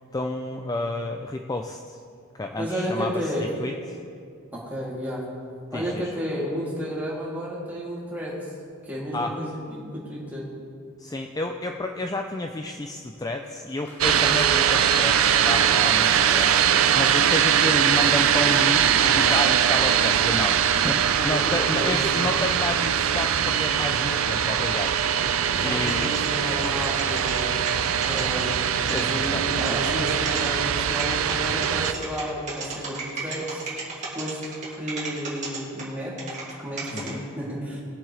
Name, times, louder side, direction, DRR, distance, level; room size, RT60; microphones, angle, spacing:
voice 1, 0.0-2.0 2.4-3.7 5.7-6.1 9.1-9.4 11.0-26.1 28.9-29.4 36.9-37.2, left 2 dB, 20° left, 4 dB, 0.4 m, -31 dB
voice 2, 2.6-3.5 4.5-5.2 5.7-8.5 8.8-10.5 21.2-22.3 25.5-27.6 28.1-28.6 28.9-33.6 34.1-34.4 34.8-36.2 36.6-37.8, equal, 10° right, -8 dB, 2.9 m, -32 dB
Applause, 13.2-29.4, left 1 dB, 55° left, 2.1 m, -46 dB
sound 1, 14.0-31.9, right 8 dB, 85° right, 0.5 m, -22 dB
sound 2, 25.6-29.0 29.5-30.5 31.0-36.5 36.8-37.1, right 4 dB, 35° right, 2.4 m, -34 dB
20.5 x 7.3 x 3.3 m, 2.4 s
head